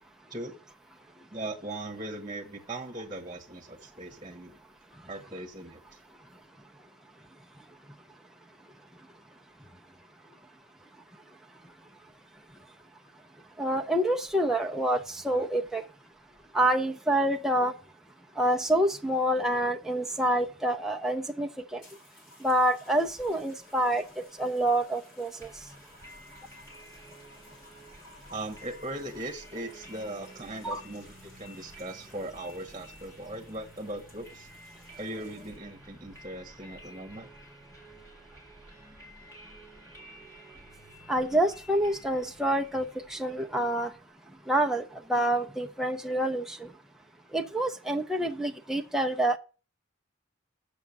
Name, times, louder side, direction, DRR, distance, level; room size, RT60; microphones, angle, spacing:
voice 1, 1.3-4.5 5.1-5.8 28.3-34.5 35.0-37.3, right 1 dB, 20° right, 1.3 m, -39 dB
voice 2, 13.6-15.8 16.5-17.7 18.4-21.8 22.4-25.5 30.6-30.8 41.1-43.9 44.5-46.7 47.3-49.4, right 1 dB, ahead, 0.6 m, -27 dB
sound 1, 21.8-35.8 36.7-37.0, left 2 dB, 45° left, 3.9 m, -56 dB
sound 2, 25.4-44.1, right 1 dB, 15° left, 3.9 m, -52 dB
7.0 x 6.5 x 7.1 m
head